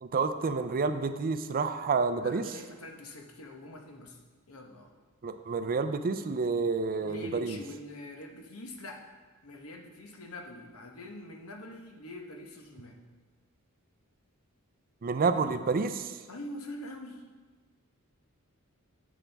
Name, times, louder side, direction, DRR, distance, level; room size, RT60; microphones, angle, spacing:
voice 1, 0.0-2.4 5.2-7.6 15.0-16.1, right 4 dB, 40° right, 9 dB, 0.4 m, -29 dB
voice 2, 2.2-4.2 4.5-4.9 7.0-9.0 9.4-13.0 16.3-17.2, left 1 dB, 70° left, 2 dB, 1.1 m, -44 dB
9.9 x 7.4 x 3.4 m, 1.3 s
head